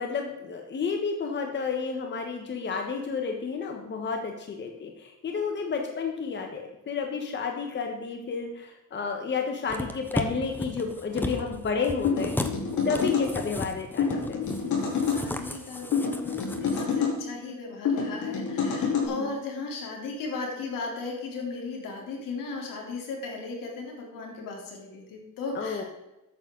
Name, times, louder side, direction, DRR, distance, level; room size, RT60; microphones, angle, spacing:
voice 1, 0.0-12.3 12.8-14.4 19.0-19.3 25.5-25.8, left 5 dB, 35° left, 3 dB, 1.4 m, -31 dB
sound 1, 9.7-16.8 17.2-17.3, left 1 dB, 5° left, 0.9 m, -35 dB
sound 2, 12.0-13.3 14.0-15.2 15.9-17.2 17.9-19.1, left 6 dB, 65° left, 4.2 m, -27 dB
voice 2, 14.6-25.8, left 3 dB, 80° left, 0 dB, 3.8 m, -36 dB
13.0 x 9.3 x 4.0 m, 0.96 s
cardioid pair, 125°, 32 cm